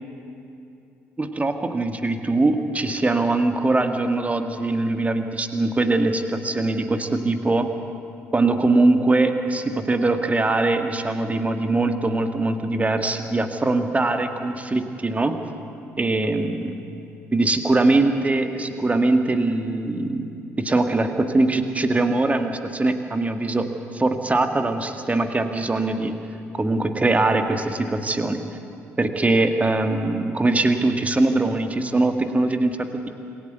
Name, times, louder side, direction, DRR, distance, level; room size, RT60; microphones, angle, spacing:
voice 1, 1.2-7.7 8.3-15.4 16.0-16.7 17.3-20.3 20.6-23.7 23.9-26.1 26.5-28.4 29.0-33.1, right 2 dB, 20° right, 6 dB, 1.6 m, -22 dB
26.0 x 13.5 x 8.0 m, 2.6 s
figure-of-eight pair, 45°, 7 cm